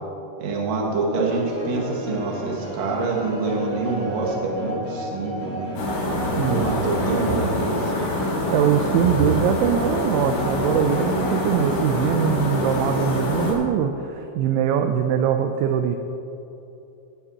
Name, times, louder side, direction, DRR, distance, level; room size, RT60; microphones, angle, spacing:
voice 1, 0.4-5.7 6.5-7.8, right 3 dB, 70° right, -2 dB, 1.5 m, -26 dB
sound 1, 1.3-11.7, equal, 50° left, 1.0 m, -34 dB
sound 2, 5.8-13.5, left 1 dB, 65° left, 4.6 m, -25 dB
voice 2, 6.4-6.8 8.5-16.0, right 8 dB, 85° right, 6 dB, 2.6 m, -22 dB
17.5 x 10.0 x 2.9 m, 3.0 s
omnidirectional pair, 5.8 m